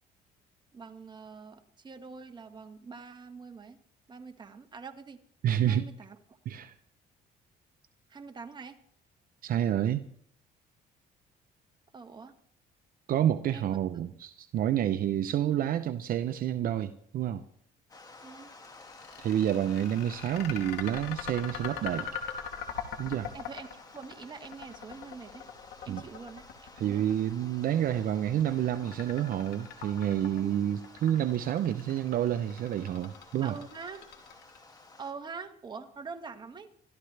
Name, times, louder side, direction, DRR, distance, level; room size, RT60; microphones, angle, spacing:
voice 1, 0.7-3.8 4.1-5.2 5.6-6.4 8.1-8.8 11.9-12.3 13.5-13.8 18.2-18.5 23.3-25.5 25.8-27.0 33.4-34.1 35.0-36.7, right 5 dB, 25° right, 1.4 m, -45 dB
voice 2, 5.4-5.9 6.5-6.7 9.4-10.0 13.1-17.4 19.2-22.1 23.0-23.3 25.9-26.0 26.8-33.6, right 11 dB, 60° right, 0.7 m, -29 dB
sound 1, 17.9-35.1, left 3 dB, 20° left, 1.8 m, -53 dB
sound 2, 18.6-34.8, left 8 dB, 75° left, 2.7 m, -41 dB
26.0 x 13.0 x 3.3 m
cardioid pair, 110°, 17 cm